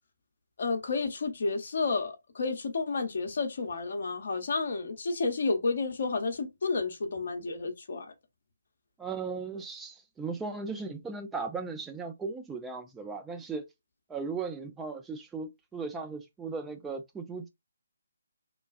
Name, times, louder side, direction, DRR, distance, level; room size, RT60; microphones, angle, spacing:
voice 1, 0.6-8.1, left 4 dB, 50° left, 0.8 m, -31 dB
voice 2, 9.0-13.7 14.1-17.5, right 4 dB, 10° right, 0.4 m, -37 dB
3.1 x 2.2 x 2.5 m
figure-of-eight pair, 145°, 0 cm